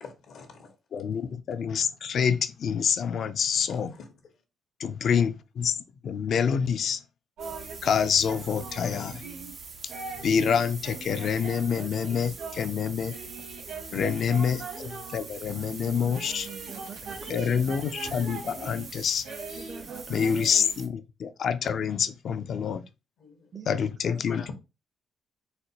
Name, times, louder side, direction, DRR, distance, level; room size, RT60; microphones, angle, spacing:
voice 1, 0.0-0.8 3.7-4.1 23.2-23.5 24.0-24.5, left 5 dB, 75° left, 0.9 m, -43 dB
voice 2, 0.9-3.9 4.8-5.7 6.0-7.0 7.8-9.2 9.8-9.9 10.2-13.1 13.9-16.5 17.3-19.7 20.1-22.8 23.7-24.5, left 7 dB, 60° left, 0.4 m, -27 dB
sound 1, 7.4-20.9, right 4 dB, 75° right, 1.3 m, -44 dB
sound 2, 7.4-20.8, right 4 dB, 90° right, 2.1 m, -42 dB
voice 3, 13.9-14.4 15.7-17.8 19.6-20.4 23.5-23.7, right 7 dB, 40° right, 0.5 m, -45 dB
4.1 x 2.1 x 2.7 m
cardioid pair, 85°, 0 cm